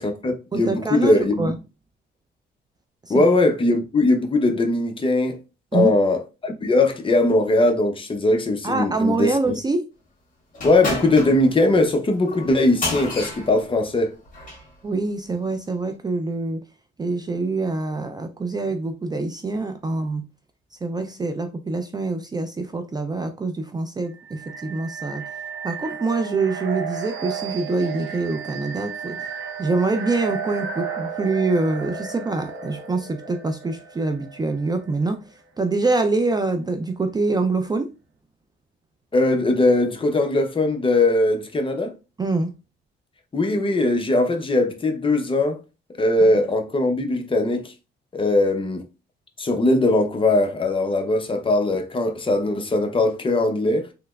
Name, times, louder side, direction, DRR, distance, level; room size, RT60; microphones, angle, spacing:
voice 1, 0.0-1.5 3.1-5.4 5.7-9.6 10.6-14.1 39.1-41.9 43.3-45.6 46.0-47.7 48.1-48.8 49.4-53.9, left 2 dB, 25° left, 0.6 m, -20 dB
voice 2, 0.5-1.6 3.0-3.2 5.7-5.9 8.6-9.8 14.8-16.6 17.0-20.2 20.8-25.2 25.6-29.3 29.6-35.2 35.6-37.9 42.2-42.5 46.2-46.3, right 3 dB, 20° right, 0.4 m, -25 dB
sound 1, 10.5-14.7, left 2 dB, 40° left, 1.6 m, -31 dB
sound 2, 24.1-34.9, right 7 dB, 90° right, 1.0 m, -33 dB
3.3 x 2.9 x 2.3 m
cardioid pair, 90°, 20 cm